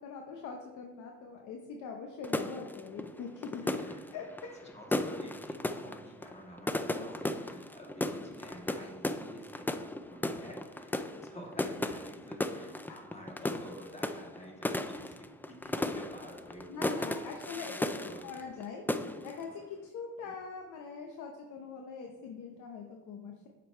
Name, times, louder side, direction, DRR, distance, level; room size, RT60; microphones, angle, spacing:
voice 1, 0.0-3.8 4.1-4.2 4.6-4.7 6.9-7.3 12.9-13.0 16.7-18.8 19.2-23.5, left 5 dB, 80° left, 2 dB, 0.8 m, -43 dB
sound 1, 2.2-18.6 18.9-19.4, left 1 dB, 5° left, 0.4 m, -36 dB
voice 2, 3.6-4.0 4.5-15.2 15.5-17.3 17.5-18.3 20.2-20.3, equal, 20° left, -1 dB, 2.1 m, -50 dB
7.6 x 5.3 x 4.4 m, 1.2 s
cardioid pair, 90°, 30 cm